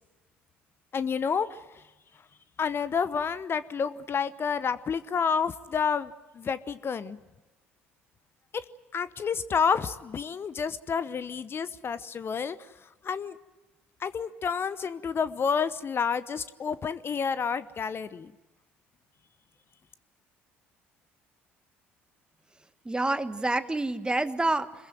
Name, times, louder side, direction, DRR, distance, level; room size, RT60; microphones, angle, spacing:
voice 1, 0.9-1.6 2.6-7.2 8.9-12.6 13.0-13.3 14.0-18.3, left 6 dB, 40° left, 14 dB, 1.0 m, -29 dB
voice 2, 22.8-24.9, right 2 dB, 15° right, 12 dB, 1.4 m, -28 dB
26.0 x 21.5 x 7.8 m, 1.1 s
hypercardioid pair, 55°, 6 cm